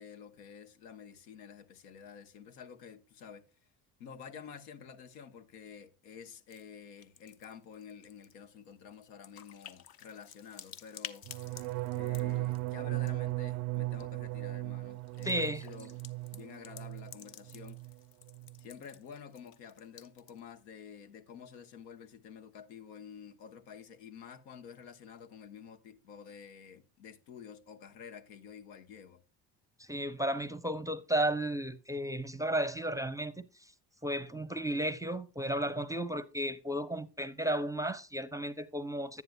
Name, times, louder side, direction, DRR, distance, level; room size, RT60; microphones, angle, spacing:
voice 1, 0.0-3.5 4.0-11.3 11.9-17.8 18.6-29.2, left 7 dB, 80° left, 1.0 m, -50 dB
sound 1, 6.5-6.6 6.9-13.3 13.7-14.0 14.9-20.5, left 9 dB, 45° left, 0.9 m, -52 dB
sound 2, 11.2-17.2 17.5-18.0 18.2-18.6, right 20 dB, 75° right, 0.6 m, -37 dB
voice 2, 15.2-15.6 29.8-33.5 34.0-39.2, right 1 dB, 5° right, 0.6 m, -33 dB
10.5 x 9.2 x 2.4 m
hypercardioid pair, 60°, 49 cm